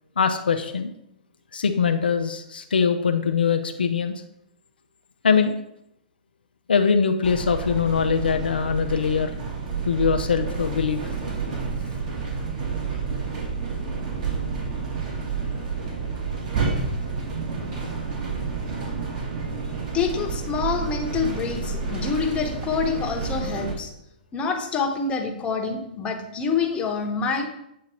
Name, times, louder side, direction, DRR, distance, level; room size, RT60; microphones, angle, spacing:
voice 1, 0.2-0.9 1.5-4.1 5.2-5.6 6.7-9.3 9.8-11.0, left 6 dB, 80° left, 7 dB, 0.5 m, -22 dB
sound 1, 7.2-23.7, right 5 dB, 50° right, 2.1 m, -29 dB
voice 2, 19.9-23.9 24.3-27.5, left 5 dB, 20° left, 3 dB, 1.0 m, -26 dB
8.3 x 2.8 x 4.4 m, 0.79 s
hypercardioid pair, 120°, 5 cm